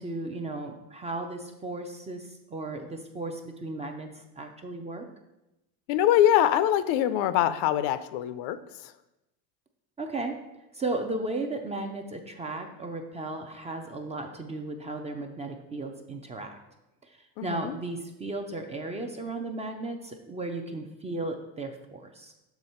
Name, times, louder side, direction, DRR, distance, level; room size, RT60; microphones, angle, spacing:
voice 1, 0.0-5.1 10.0-10.3 10.7-16.6 17.4-22.3, right 2 dB, 15° right, 4 dB, 0.4 m, -35 dB
voice 2, 5.9-8.6 17.4-17.7, left 11 dB, 70° left, 13 dB, 0.5 m, -23 dB
6.9 x 3.5 x 4.3 m, 0.94 s
supercardioid pair, 120°, 43 cm